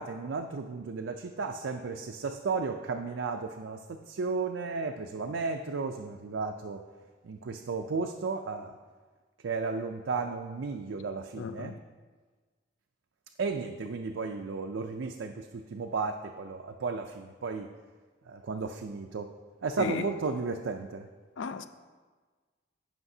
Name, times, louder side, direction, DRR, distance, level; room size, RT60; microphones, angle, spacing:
voice 1, 0.0-6.8 7.2-8.7 9.4-11.7 13.4-17.7 18.3-19.3 19.6-21.1, right 4 dB, 80° right, 0.4 m, -34 dB
voice 2, 11.3-11.8 19.8-20.1 21.4-21.7, left 5 dB, 80° left, 0.4 m, -35 dB
15.5 x 5.6 x 2.7 m
head